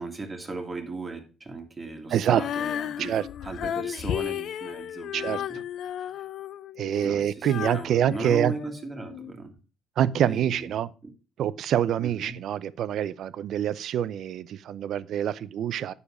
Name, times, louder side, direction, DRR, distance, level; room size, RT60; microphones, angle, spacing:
voice 1, 0.0-5.6 6.0-6.1 7.0-9.5 10.2-10.7 11.0-11.1 12.0-12.4, right 3 dB, 20° right, 1.8 m, -37 dB
Female singing, 2.3-9.3, left 10 dB, 55° left, 0.5 m, -34 dB
voice 2, 6.8-8.5 10.0-10.9 11.4-15.9, right 10 dB, 55° right, 0.5 m, -26 dB
9.6 x 6.9 x 4.8 m
cardioid pair, 155°, 0 cm